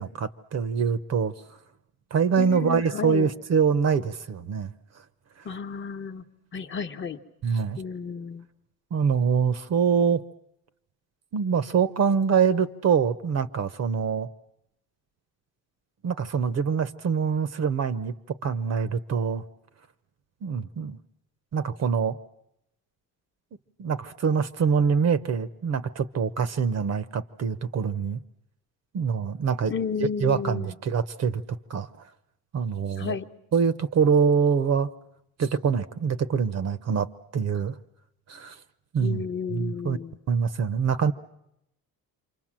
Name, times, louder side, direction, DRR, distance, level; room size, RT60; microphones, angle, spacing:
voice 1, 0.0-1.3 2.1-4.7 7.4-7.8 8.9-10.2 11.3-14.3 16.0-19.4 20.4-21.0 21.5-22.2 23.8-28.2 28.9-29.7 30.2-31.4 31.7-31.9 32.5-33.2 33.5-34.9 35.4-37.7 38.3-38.5 38.9-39.2 39.5-40.0 40.3-41.1, right 6 dB, 45° right, 0.9 m, -24 dB
voice 2, 2.4-3.3 5.4-6.2 6.5-7.2 7.8-8.5 29.7-30.7 33.0-33.3 39.0-40.2, left 6 dB, 30° left, 1.1 m, -32 dB
27.5 x 25.0 x 7.5 m
cardioid pair, 145°, 37 cm